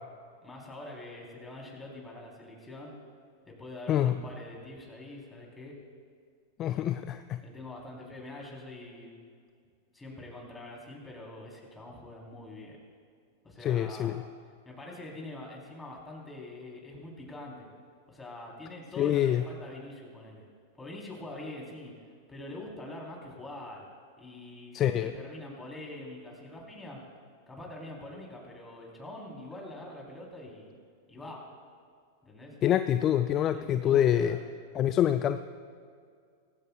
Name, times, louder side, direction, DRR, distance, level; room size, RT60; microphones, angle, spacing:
voice 1, 0.4-2.9 3.5-5.8 7.4-9.1 9.9-12.8 13.4-14.2 14.7-17.7 18.1-20.4 20.7-21.9 22.3-23.9 24.2-27.0 27.5-30.7 31.1-31.4 32.2-32.6 33.5-34.4, left 1 dB, 10° left, -2 dB, 3.7 m, -44 dB
voice 2, 3.9-4.2 6.6-7.4 13.6-14.2 19.0-19.4 24.7-25.1 32.6-34.4 34.7-35.4, left 11 dB, 35° left, 10 dB, 0.4 m, -26 dB
18.0 x 15.5 x 2.4 m, 2.2 s
hypercardioid pair, 100°, 0 cm